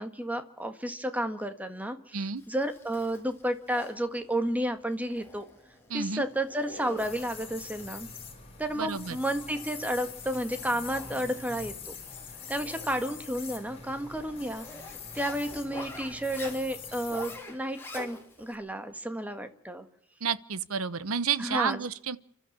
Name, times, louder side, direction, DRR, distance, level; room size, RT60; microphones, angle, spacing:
voice 1, 0.0-5.4 5.9-8.1 8.6-12.0 12.5-14.6 15.1-19.9 21.4-21.8, right 1 dB, 5° right, 1.6 m, -32 dB
Zipper (clothing), 2.4-18.5, left 2 dB, 10° left, 4.1 m, -47 dB
voice 2, 5.9-6.2 8.8-9.2 20.2-22.2, right 6 dB, 70° right, 0.9 m, -30 dB
sound 1, 7.0-17.4, left 5 dB, 30° left, 5.1 m, -44 dB
30.0 x 12.5 x 7.4 m
head